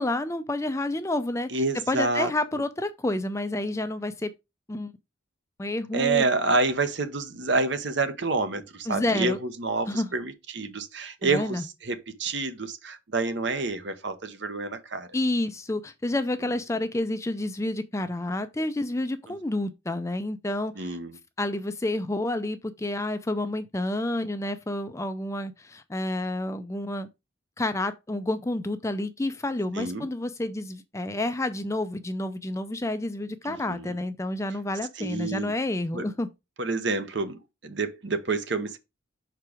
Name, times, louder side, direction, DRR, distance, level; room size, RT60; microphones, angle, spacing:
voice 1, 0.0-1.5 1.9-4.3 4.7-4.9 5.6-6.2 8.9-9.4 9.9-10.1 11.2-11.6 15.1-21.0 21.4-27.1 27.6-36.3, left 1 dB, 15° left, 0.4 m, -29 dB
voice 2, 1.5-2.3 5.9-15.1 16.4-16.8 19.3-19.4 20.8-21.2 29.7-30.1 33.4-34.0 35.0-35.5 35.9-36.1 36.6-38.8, right 3 dB, 55° right, 0.9 m, -28 dB
5.8 x 4.5 x 4.9 m
head